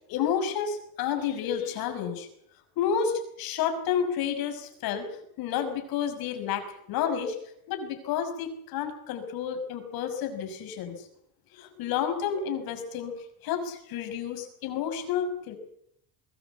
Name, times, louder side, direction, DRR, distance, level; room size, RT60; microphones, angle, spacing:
voice 1, 0.1-2.3 2.8-7.4 7.7-11.1 11.5-13.1 13.4-15.6, left 8 dB, 60° left, 7 dB, 5.9 m, -30 dB
22.0 x 20.0 x 8.2 m, 0.70 s
cardioid pair, 145°, 40 cm